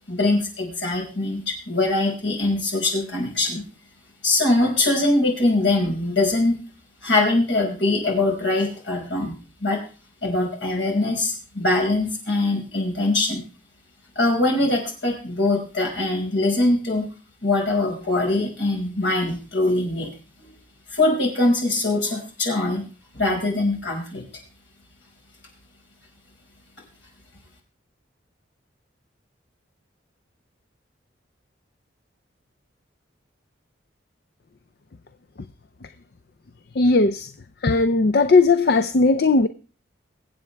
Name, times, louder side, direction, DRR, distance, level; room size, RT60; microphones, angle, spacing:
voice 1, 0.1-3.6 4.2-6.6 7.0-9.3 9.6-9.8 10.2-13.4 14.2-17.0 17.4-20.1 20.4-20.5 20.9-22.9 23.1-24.2, left 2 dB, 75° left, 5.3 m, -22 dB
voice 2, 36.7-37.3 37.6-39.5, left 3 dB, 55° left, 0.5 m, -17 dB
23.5 x 8.2 x 3.4 m
head